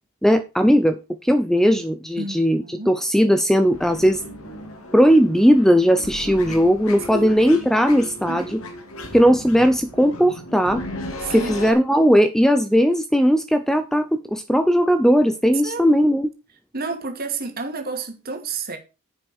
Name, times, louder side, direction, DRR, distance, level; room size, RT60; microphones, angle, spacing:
voice 1, 0.2-4.2 4.9-8.6 9.1-10.8 11.3-16.3, equal, ahead, 0.7 m, -18 dB
voice 2, 2.2-3.0 7.1-7.3 8.3-8.5 11.2-11.5 15.6-15.8 16.7-18.8, right 3 dB, 45° right, 2.7 m, -30 dB
sound 1, 3.7-11.7, left 1 dB, 75° left, 2.8 m, -35 dB
10.5 x 7.9 x 4.5 m
head